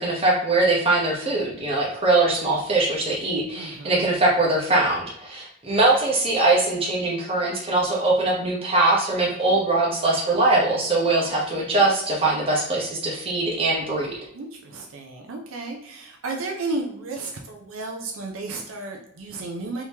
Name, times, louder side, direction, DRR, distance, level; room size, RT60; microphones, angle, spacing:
voice 1, 0.0-14.2, right 2 dB, 25° right, -3 dB, 0.9 m, -22 dB
voice 2, 3.6-4.1 11.7-11.8 14.3-19.8, right 3 dB, 75° right, 2 dB, 0.5 m, -33 dB
3.5 x 2.9 x 2.8 m, 0.76 s
head